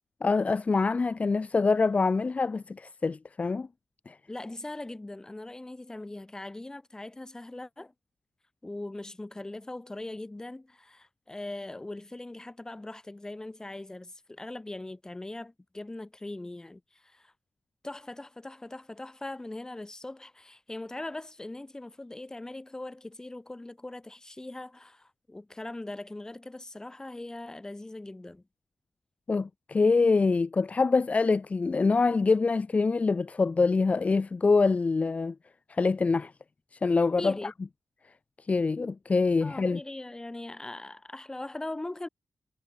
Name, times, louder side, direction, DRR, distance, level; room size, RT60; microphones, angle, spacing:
voice 1, 0.2-3.7 4.1-4.2 29.3-35.3 35.7-36.3 36.8-37.5 38.5-39.8, left 4 dB, 35° left, 2.2 m, -25 dB
voice 2, 4.3-7.9 8.6-17.3 17.8-28.4 37.2-37.5 39.4-42.1, left 2 dB, 15° left, 6.1 m, -40 dB
wide cardioid pair, 145°, 4 cm